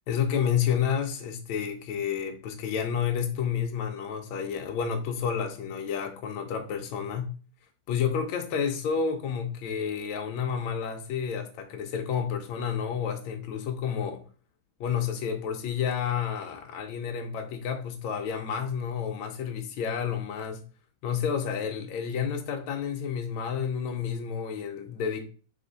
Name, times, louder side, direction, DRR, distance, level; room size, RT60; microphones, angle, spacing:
voice 1, 0.1-7.3 7.9-14.2 14.8-20.6 21.0-25.3, left 7 dB, 85° left, 1.4 m, -30 dB
3.6 x 3.2 x 3.8 m
omnidirectional pair, 2.2 m